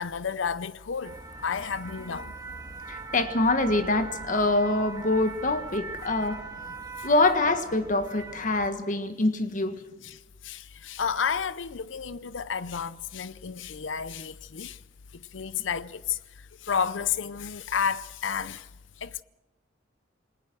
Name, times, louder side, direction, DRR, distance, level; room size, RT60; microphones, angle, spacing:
voice 1, 0.0-2.3 10.0-14.8 15.1-16.2 16.6-18.7 19.0-19.2, left 6 dB, 85° left, 0.6 m, -31 dB
sound 1, 1.0-8.7, right 3 dB, 20° right, 2.0 m, -41 dB
voice 2, 2.9-6.4 7.0-9.8, left 2 dB, 45° left, 1.6 m, -25 dB
27.5 x 19.5 x 6.2 m
head